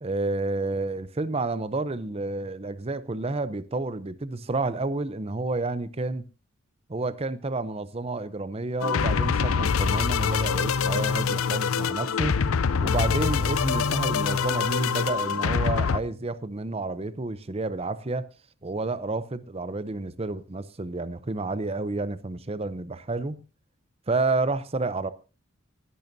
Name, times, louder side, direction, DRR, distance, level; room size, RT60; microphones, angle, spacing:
voice 1, 0.0-6.3 6.9-12.4 12.8-18.3 18.6-23.4 24.1-25.1, right 3 dB, 30° right, 0.7 m, -30 dB
sound 1, 8.8-16.0, left 6 dB, 80° left, 0.6 m, -25 dB
19.5 x 11.0 x 2.7 m
head